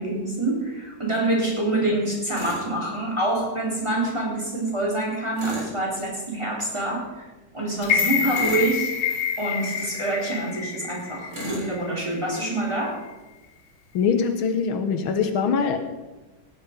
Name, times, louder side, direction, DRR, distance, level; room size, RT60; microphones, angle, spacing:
voice 1, 0.0-7.2 7.5-13.0, right 2 dB, 15° right, -4 dB, 3.5 m, -26 dB
Tools, 2.3-2.7 5.3-5.8 8.3-8.8 11.3-11.7, equal, 90° right, 5.3 m, -34 dB
sound 1, 7.8-12.0 12.3-12.4, left 7 dB, 55° left, 1.6 m, -27 dB
voice 2, 13.9-15.8, left 6 dB, 80° left, 7 dB, 1.8 m, -23 dB
17.0 x 8.7 x 5.2 m, 1.1 s
omnidirectional pair, 2.3 m